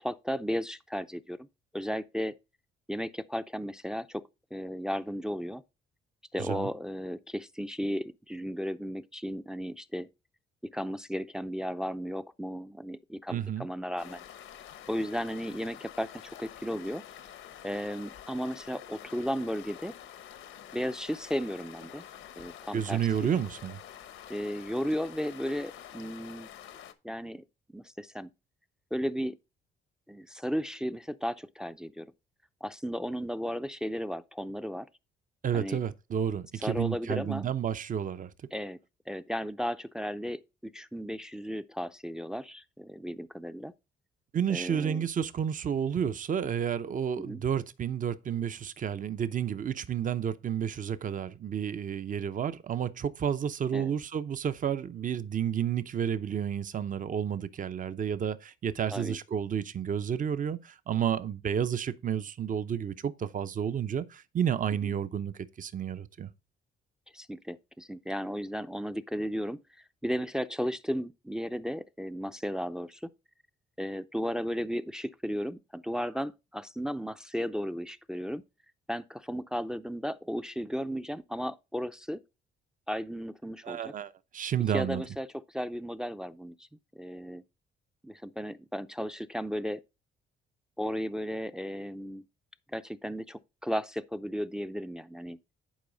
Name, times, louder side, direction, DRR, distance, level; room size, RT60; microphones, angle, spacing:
voice 1, 0.0-1.4 1.7-2.3 2.9-4.2 4.5-5.6 6.3-10.1 10.6-14.2 14.9-17.0 17.6-19.9 20.7-22.0 22.4-23.0 24.3-26.5 27.0-27.4 27.7-28.3 28.9-29.4 30.1-32.1 32.6-34.9 35.5-35.8 36.6-37.5 38.5-38.8 39.1-43.7 44.5-45.1 47.2-47.4 53.7-53.9 58.9-59.2 64.8-64.9 67.1-69.6 70.0-73.1 73.8-78.4 78.9-82.2 82.9-83.8 84.7-86.6 86.9-87.4 88.0-89.8 90.8-92.2 92.7-95.4, equal, 5° right, 0.5 m, -34 dB
voice 2, 6.4-6.7 13.3-13.7 22.7-23.8 35.4-38.3 44.3-66.3 83.6-85.0, right 8 dB, 40° right, 0.7 m, -31 dB
sound 1, 14.0-26.9, left 10 dB, 85° left, 1.0 m, -48 dB
10.5 x 4.7 x 3.9 m
cardioid pair, 90°, 20 cm